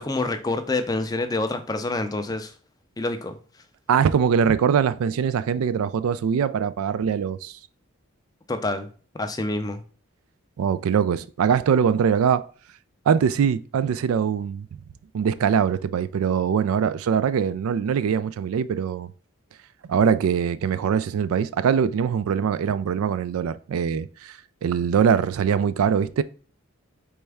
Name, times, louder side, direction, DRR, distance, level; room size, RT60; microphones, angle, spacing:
voice 1, 0.0-2.5 3.0-3.4 8.5-8.9 9.2-9.8, left 2 dB, 15° left, 0.4 m, -27 dB
voice 2, 3.9-7.6 10.6-12.5 13.1-14.7 15.1-19.1 19.9-26.2, right 7 dB, 85° right, 0.3 m, -22 dB
4.2 x 3.4 x 3.4 m
head